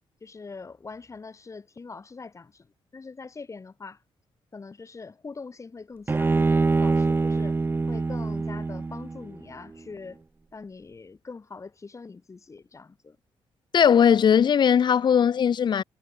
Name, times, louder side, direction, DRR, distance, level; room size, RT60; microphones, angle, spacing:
voice 1, 0.2-4.0 4.5-7.6 7.9-10.2 10.5-13.2, left 4 dB, 30° left, 7.4 m, -43 dB
Bowed string instrument, 6.1-9.4, right 3 dB, 20° right, 0.7 m, -24 dB
voice 2, 13.7-15.8, left 8 dB, 50° left, 0.7 m, -19 dB
cardioid pair, 105°, 10 cm